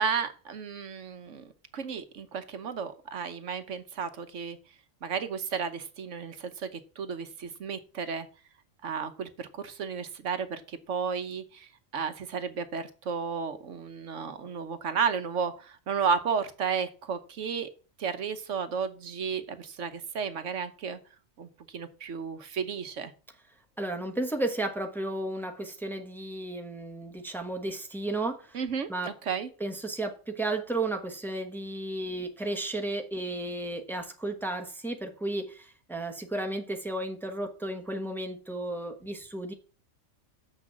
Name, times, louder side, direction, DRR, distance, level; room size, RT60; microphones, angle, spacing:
voice 1, 0.0-4.6 5.0-8.3 8.8-17.7 18.0-21.0 21.4-21.5 21.7-23.1 28.5-29.5, right 6 dB, 70° right, 10 dB, 1.2 m, -33 dB
voice 2, 23.8-28.6 28.9-29.1 29.6-39.5, right 2 dB, ahead, 4 dB, 1.2 m, -33 dB
6.9 x 6.1 x 7.4 m, 0.36 s
omnidirectional pair, 1.4 m